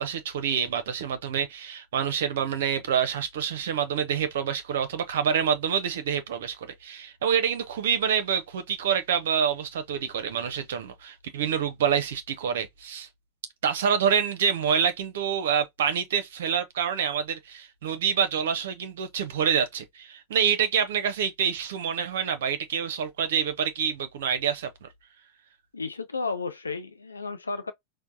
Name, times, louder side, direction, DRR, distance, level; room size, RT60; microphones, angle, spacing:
voice 1, 0.0-13.1 13.6-24.9, right 8 dB, 60° right, 0.5 m, -27 dB
voice 2, 25.7-27.7, left 4 dB, 75° left, 0.6 m, -33 dB
4.4 x 2.0 x 2.6 m
figure-of-eight pair, 90°, 0 cm